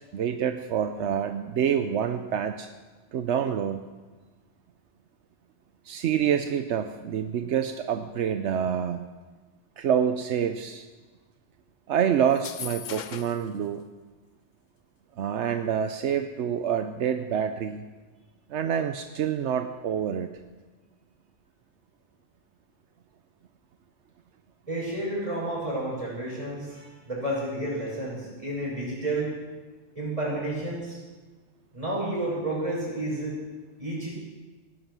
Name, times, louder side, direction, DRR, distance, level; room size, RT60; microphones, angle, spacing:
voice 1, 0.1-2.7 3.1-3.8 5.8-9.0 9.8-10.9 11.9-13.8 15.2-17.8 18.5-20.3, right 8 dB, 80° right, 7 dB, 1.0 m, -27 dB
sound 1, 12.3-13.5, left 8 dB, 50° left, 0.6 m, -38 dB
voice 2, 24.7-29.3 29.9-31.0 31.7-33.4 33.8-34.1, right 1 dB, 30° right, -5 dB, 6.0 m, -31 dB
17.0 x 10.5 x 6.1 m, 1.3 s
omnidirectional pair, 1.2 m